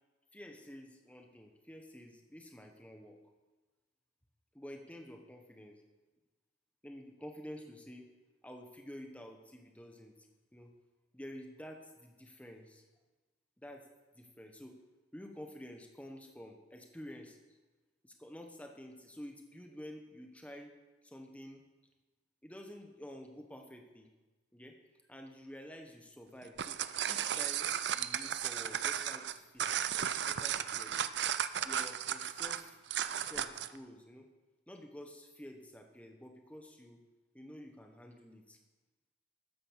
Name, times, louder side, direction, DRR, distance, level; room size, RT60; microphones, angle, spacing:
voice 1, 0.3-3.2 4.5-5.8 6.8-8.1 8.4-10.1 10.5-10.8 11.1-12.8 13.6-13.8 14.1-14.8 15.1-17.4 18.0-20.7 21.0-21.6 22.4-24.1 24.5-24.8 25.1-26.8 27.1-29.7 30.3-31.0 31.6-32.8 33.2-34.3 34.7-37.0 37.3-38.6, equal, 5° left, 3 dB, 1.3 m, -50 dB
sound 1, 26.4-33.8, right 9 dB, 65° right, 0.5 m, -35 dB
13.0 x 9.8 x 6.4 m, 1.2 s
head